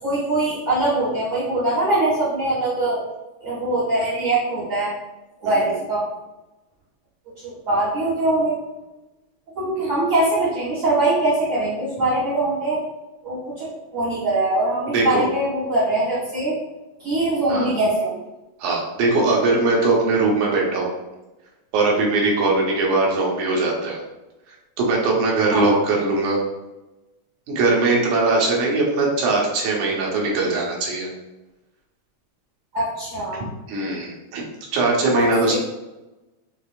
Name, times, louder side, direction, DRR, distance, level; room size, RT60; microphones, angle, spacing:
voice 1, 0.0-3.0 3.4-4.9 5.4-6.0 7.4-8.6 9.6-12.8 13.2-16.5 17.0-18.2 25.5-25.7 32.7-33.4 35.1-35.6, right 2 dB, 45° right, -10 dB, 2.1 m, -22 dB
voice 2, 5.4-5.8 9.8-9.9 14.9-15.2 17.5-17.7 18.6-20.9 21.7-24.0 24.8-26.4 27.5-31.1 33.7-34.4 34.7-35.6, right 3 dB, 85° right, -2 dB, 2.4 m, -20 dB
6.6 x 3.1 x 2.4 m, 1.0 s
omnidirectional pair, 3.3 m